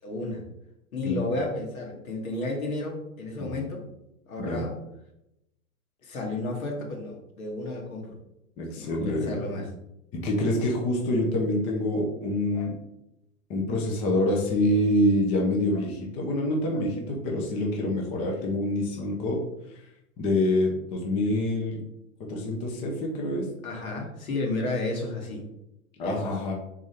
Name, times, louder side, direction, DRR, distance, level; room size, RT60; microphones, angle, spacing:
voice 1, 0.0-0.4 0.9-3.9 4.3-4.7 6.0-8.1 8.7-9.7 23.6-25.4 26.0-26.3, left 2 dB, 80° left, 0 dB, 1.6 m, -32 dB
voice 2, 8.6-9.4 10.1-12.7 13.5-19.4 19.7-19.8 20.2-21.8 22.2-23.5 26.0-26.5, left 1 dB, 15° left, 0 dB, 0.4 m, -26 dB
3.7 x 3.1 x 4.2 m, 0.84 s
hypercardioid pair, 130°, 42 cm